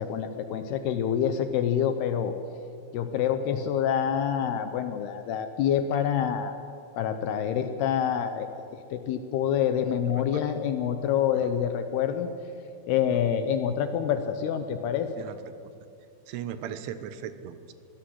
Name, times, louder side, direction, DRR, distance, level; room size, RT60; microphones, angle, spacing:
voice 1, 0.0-2.4 2.9-6.6 6.9-8.5 8.9-12.3 12.9-15.1, left 9 dB, 75° left, 8 dB, 2.6 m, -27 dB
voice 2, 16.3-17.7, right 9 dB, 85° right, 11 dB, 3.5 m, -37 dB
23.0 x 17.5 x 7.8 m, 2.4 s
omnidirectional pair, 5.4 m